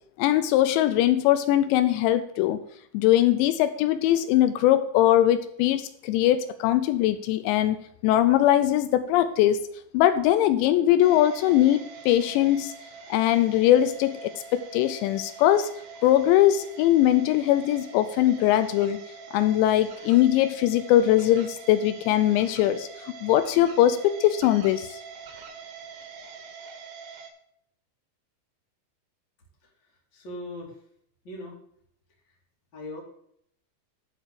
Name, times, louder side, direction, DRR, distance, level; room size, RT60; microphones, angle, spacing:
voice 1, 0.2-2.6 2.9-9.7 9.9-12.7 13.1-15.7 16.0-19.0 19.3-25.0, left 12 dB, 85° left, 11 dB, 2.8 m, -21 dB
sound 1, 11.0-27.3, right 5 dB, 75° right, 3.5 m, -44 dB
voice 2, 30.1-30.8 31.2-31.5 32.7-33.0, left 1 dB, 30° left, -2 dB, 2.6 m, -38 dB
12.0 x 4.4 x 6.5 m, 0.70 s
omnidirectional pair, 5.1 m